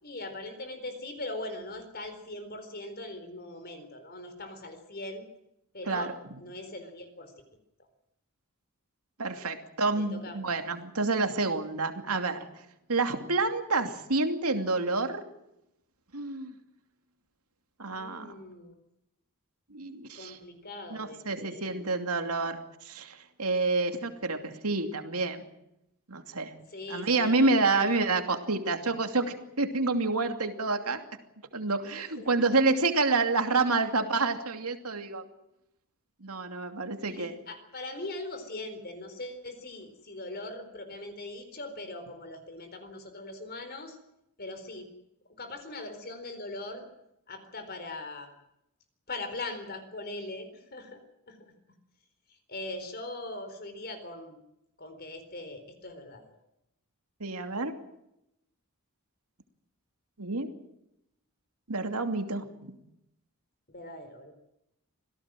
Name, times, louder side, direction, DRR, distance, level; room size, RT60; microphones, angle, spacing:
voice 1, 0.0-5.2 5.7-6.1 6.4-7.3 10.0-10.5 17.9-18.8 20.1-21.9 26.7-28.1 31.8-32.3 37.0-44.0 44.4-44.9 45.4-46.9 47.3-48.3 49.1-51.0 51.3-51.4 52.5-54.4 54.8-56.3 63.7-64.3, left 2 dB, 45° left, 8 dB, 4.1 m, -41 dB
voice 2, 9.2-12.4 12.9-15.2 16.1-16.5 17.8-18.3 19.7-20.4 20.9-25.5 26.1-26.5 26.9-31.0 31.5-35.2 36.2-37.3 57.2-57.7 60.2-60.5 61.7-62.7, right 3 dB, 85° right, 6 dB, 2.7 m, -28 dB
26.5 x 17.5 x 7.6 m, 0.84 s
head